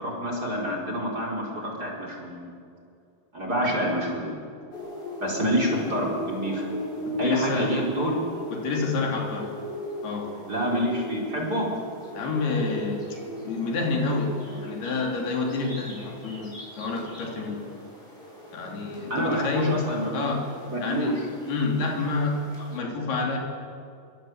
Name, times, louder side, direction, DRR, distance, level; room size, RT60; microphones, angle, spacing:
voice 1, 0.0-2.5 3.3-4.4 5.2-6.6 7.2-8.2 10.5-11.7 19.1-20.2 20.6-21.3, equal, 25° right, -1 dB, 4.9 m, -27 dB
sound 1, 4.7-22.8, left 1 dB, 10° left, 6.5 m, -39 dB
voice 2, 7.1-7.7 8.0-8.2 8.5-9.6 10.0-10.4 12.2-17.7 18.5-19.8 20.1-20.4 20.8-21.2 21.5-23.4, left 3 dB, 75° left, 0 dB, 5.3 m, -28 dB
25.5 x 24.5 x 8.1 m, 2.5 s
omnidirectional pair, 4.6 m